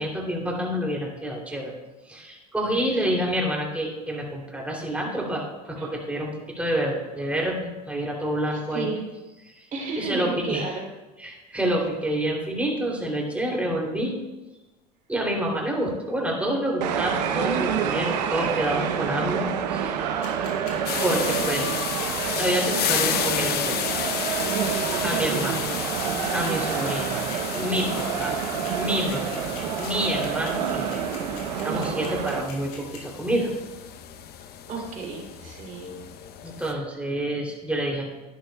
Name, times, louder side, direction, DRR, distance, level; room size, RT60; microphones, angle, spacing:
voice 1, 0.0-1.7 2.1-8.9 9.5-9.7 10.0-10.7 11.2-14.2 15.1-19.9 21.0-21.7 22.4-23.8 25.0-25.7 26.3-27.2 27.5-28.4 28.7-29.4 29.8-31.0 31.6-33.5 36.4-38.1, right 1 dB, 5° right, -2 dB, 3.0 m, -28 dB
voice 2, 8.2-9.0 9.7-10.8 34.7-36.1, right 4 dB, 40° right, -1 dB, 3.3 m, -33 dB
sound 1, 16.8-32.4, right 8 dB, 90° right, 0.9 m, -28 dB
sound 2, 20.2-33.0, left 6 dB, 70° left, 2.8 m, -42 dB
sound 3, 20.9-36.7, left 9 dB, 50° left, 0.9 m, -32 dB
11.5 x 10.5 x 2.3 m, 1.1 s
supercardioid pair, 95°, 21 cm